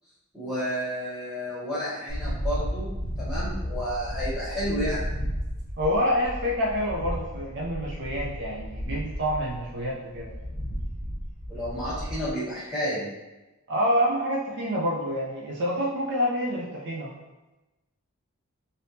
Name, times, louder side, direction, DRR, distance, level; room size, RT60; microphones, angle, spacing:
voice 1, 0.3-5.1 11.5-13.1, equal, 5° right, -12 dB, 1.3 m, -31 dB
sound 1, 2.1-12.3, equal, 35° left, 1.1 m, -33 dB
voice 2, 5.8-10.3 13.7-17.1, equal, 50° right, -3 dB, 0.4 m, -27 dB
3.4 x 2.7 x 2.7 m, 1.1 s
head